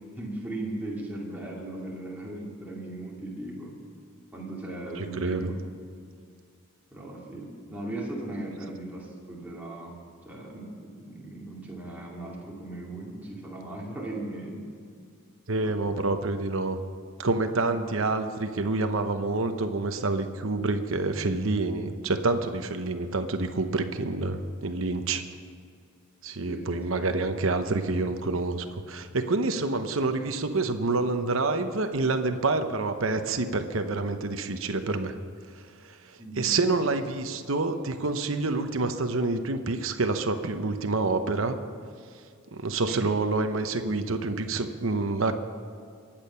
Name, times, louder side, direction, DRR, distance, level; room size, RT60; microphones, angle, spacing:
voice 1, 0.2-3.8 4.3-5.6 6.9-9.9 10.2-14.7 15.6-16.0 26.5-26.9 36.2-36.6 42.9-43.0, right 1 dB, 10° right, -4 dB, 2.5 m, -38 dB
voice 2, 5.0-5.5 15.5-16.8 17.2-25.2 26.2-35.1 35.8-41.6 42.5-45.3, right 3 dB, 70° right, 8 dB, 0.9 m, -27 dB
22.5 x 8.8 x 5.7 m, 2.2 s
head